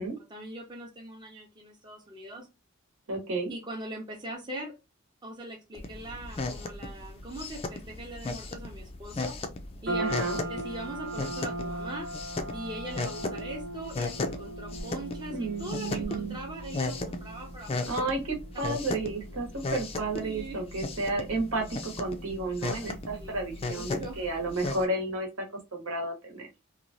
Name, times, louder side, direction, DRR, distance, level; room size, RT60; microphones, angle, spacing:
voice 1, 0.3-2.5 3.5-4.7 5.2-9.4 9.8-10.0 10.5-12.1 12.5-17.9 20.2-20.6 23.1-23.4 23.7-24.2, right 1 dB, 20° right, 0 dB, 0.6 m, -41 dB
voice 2, 3.1-3.5 10.0-10.4 15.3-16.3 17.9-25.5 25.7-26.5, right 2 dB, 75° right, 2 dB, 1.1 m, -32 dB
sound 1, 5.7-24.8, left 2 dB, 30° left, 0.4 m, -36 dB
sound 2, 9.9-24.3, right 1 dB, 55° right, 0.8 m, -40 dB
3.0 x 2.3 x 2.5 m, 0.26 s
head